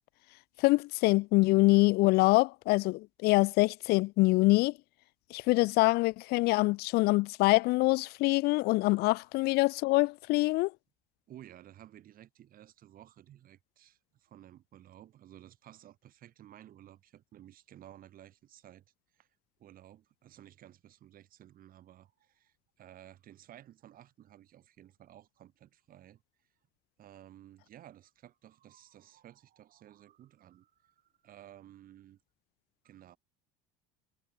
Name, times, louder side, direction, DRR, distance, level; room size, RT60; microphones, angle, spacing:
voice 1, 0.6-4.7 5.3-10.7, left 22 dB, 60° left, 0.5 m, -25 dB
voice 2, 11.3-18.8 19.1-19.3 19.6-26.2 27.0-32.2 32.8-33.2, right 12 dB, 50° right, 5.1 m, -55 dB
supercardioid pair, 85°, 18 cm